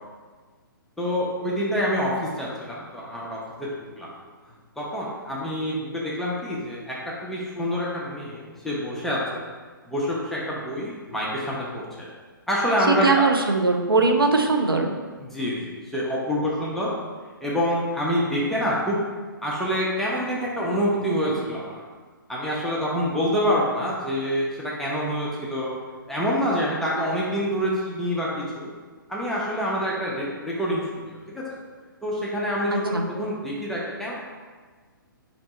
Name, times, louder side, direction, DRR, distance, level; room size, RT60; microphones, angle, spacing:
voice 1, 1.0-3.7 4.0-4.1 4.8-7.0 7.2-9.4 9.9-12.1 12.5-13.2 15.2-16.9 17.4-19.0 19.4-21.8 22.3-25.7 26.1-28.7 29.1-31.4 32.0-34.2, equal, ahead, -6 dB, 0.5 m, -26 dB
voice 2, 13.0-14.9 32.7-33.0, right 3 dB, 80° right, 3 dB, 0.6 m, -20 dB
4.3 x 3.0 x 4.1 m, 1.4 s
figure-of-eight pair, 125°, 12 cm